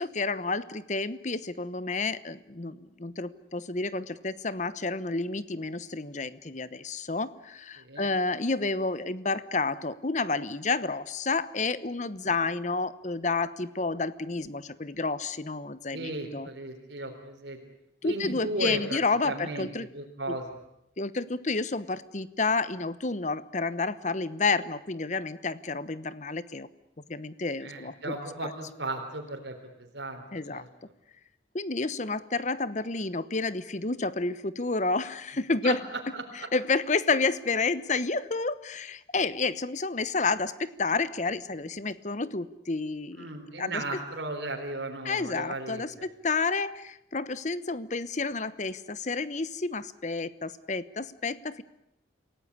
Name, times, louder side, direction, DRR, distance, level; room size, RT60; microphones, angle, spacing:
voice 1, 0.0-16.5 18.0-19.9 20.3-20.4 21.0-26.7 27.1-28.2 28.4-28.5 30.3-30.6 31.5-35.8 36.5-43.3 43.6-43.8 45.0-51.6, left 3 dB, 40° left, 15 dB, 1.0 m, -30 dB
voice 2, 7.8-8.1 12.2-12.4 15.9-17.6 18.0-20.5 27.6-30.2 30.5-30.7 35.6-36.5 43.2-46.1, right 2 dB, 70° right, 2 dB, 3.9 m, -36 dB
27.5 x 17.5 x 9.9 m, 0.82 s
head